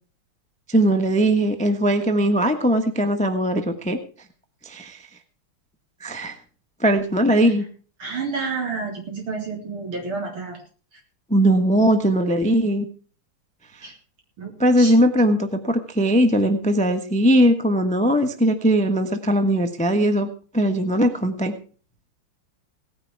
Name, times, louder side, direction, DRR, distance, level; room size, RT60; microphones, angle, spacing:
voice 1, 0.7-4.0 4.6-5.0 6.0-6.4 6.8-7.6 11.3-12.8 13.8-13.9 14.6-21.5, equal, 5° left, 7 dB, 0.7 m, -20 dB
voice 2, 8.0-10.6 13.8-13.9 14.4-14.5 14.8-14.9, right 4 dB, 70° right, 0 dB, 4.4 m, -29 dB
17.5 x 9.7 x 4.6 m, 0.40 s
omnidirectional pair, 2.4 m